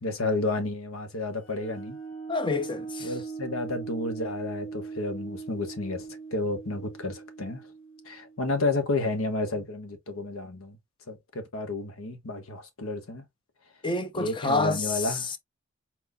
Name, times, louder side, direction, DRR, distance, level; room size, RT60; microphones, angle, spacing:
voice 1, 0.0-2.0 3.0-7.6 8.0-10.8 11.1-13.2 14.1-15.3, left 2 dB, 85° left, 1.3 m, -31 dB
sound 1, 1.4-8.8, right 4 dB, 65° left, 1.4 m, -40 dB
voice 2, 2.3-3.1 13.8-15.4, left 3 dB, 25° left, 0.6 m, -28 dB
4.4 x 4.1 x 2.3 m
head